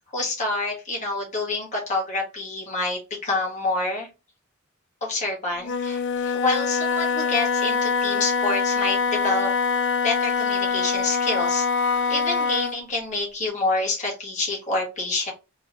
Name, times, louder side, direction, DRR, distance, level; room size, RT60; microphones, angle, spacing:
voice 1, 0.1-4.1 5.0-9.5 10.0-11.7 12.1-15.3, left 2 dB, 35° left, -2 dB, 1.6 m, -27 dB
Wind instrument woodwind instrument, 5.6-12.8, left 5 dB, 55° left, 0.4 m, -24 dB
3.5 x 3.3 x 2.7 m, 0.29 s
head